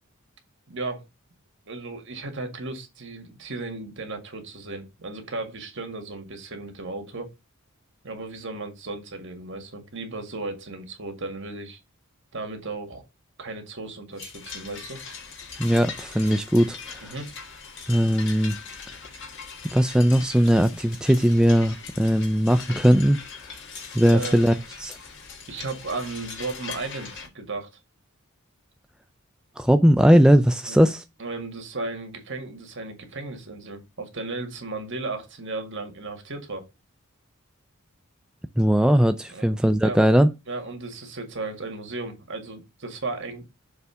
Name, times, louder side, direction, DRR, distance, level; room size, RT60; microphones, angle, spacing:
voice 1, 0.7-1.1 1.7-7.3 8.0-11.8 12.3-13.0 13.4-15.0 17.0-17.4 24.0-24.4 25.5-27.7 30.7-30.8 31.2-36.7 39.3-40.0 40.5-43.4, right 3 dB, 60° right, 1.9 m, -35 dB
sound 1, 14.2-27.3, left 5 dB, 60° left, 1.6 m, -40 dB
voice 2, 15.6-17.1 17.9-18.6 19.7-23.2 23.9-25.0 29.6-31.0 38.6-40.3, equal, 5° right, 0.3 m, -19 dB
6.8 x 3.4 x 5.5 m
head